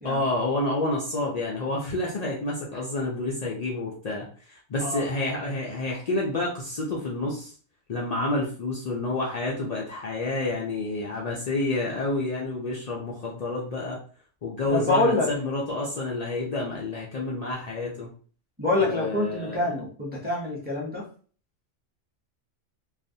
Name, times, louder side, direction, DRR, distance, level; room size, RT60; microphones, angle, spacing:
voice 1, 0.0-7.5 7.9-14.0 14.4-18.1 18.8-19.7, left 2 dB, 90° left, -3 dB, 0.3 m, -29 dB
voice 2, 14.7-15.3 18.6-21.0, left 2 dB, 10° right, -4 dB, 0.5 m, -26 dB
2.4 x 2.0 x 2.6 m, 0.42 s
omnidirectional pair, 1.3 m